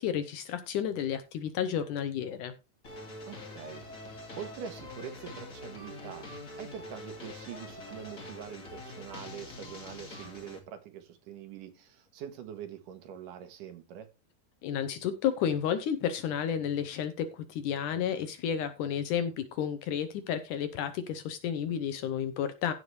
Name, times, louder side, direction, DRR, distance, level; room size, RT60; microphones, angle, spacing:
voice 1, 0.0-2.5 14.6-22.7, left 8 dB, 75° left, 11 dB, 2.0 m, -31 dB
sound 1, 2.8-10.6, left 2 dB, 30° left, 1.9 m, -45 dB
voice 2, 3.2-4.1 4.4-6.3 6.6-14.1, right 9 dB, 70° right, 9 dB, 2.5 m, -44 dB
16.0 x 5.7 x 3.2 m, 0.28 s
omnidirectional pair, 4.2 m